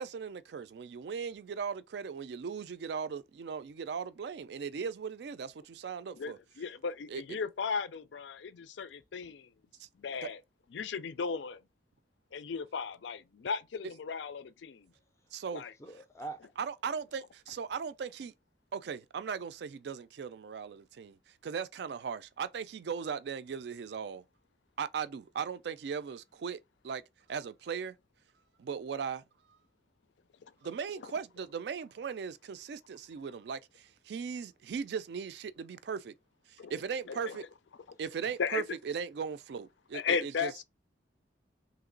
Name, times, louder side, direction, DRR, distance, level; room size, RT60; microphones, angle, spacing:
voice 1, 0.0-6.4 7.1-7.2 9.8-9.9 10.2-10.3 15.3-15.6 16.6-18.3 18.7-21.2 21.4-24.2 24.8-26.6 26.8-27.0 27.3-27.9 28.6-29.2 30.6-36.1 36.5-37.4 38.0-40.5, right 6 dB, 65° right, 0.3 m, -38 dB
voice 2, 6.2-9.5 10.0-10.4 10.7-11.6 12.3-14.9 15.5-15.7 36.6-36.7 37.1-37.4 38.4-38.6 39.9-40.5, left 5 dB, 85° left, 0.4 m, -36 dB
voice 3, 15.8-16.5, right 3 dB, 15° left, 0.4 m, -43 dB
3.1 x 2.9 x 3.7 m
head